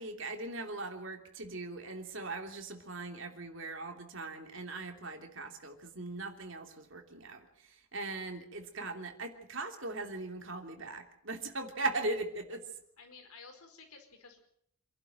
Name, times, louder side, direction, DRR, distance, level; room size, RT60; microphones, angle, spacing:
voice 1, 0.0-12.7, right 2 dB, 60° right, 4 dB, 3.0 m, -39 dB
voice 2, 13.0-14.4, left 4 dB, 85° left, 5 dB, 4.9 m, -53 dB
27.0 x 11.5 x 9.0 m, 0.72 s
head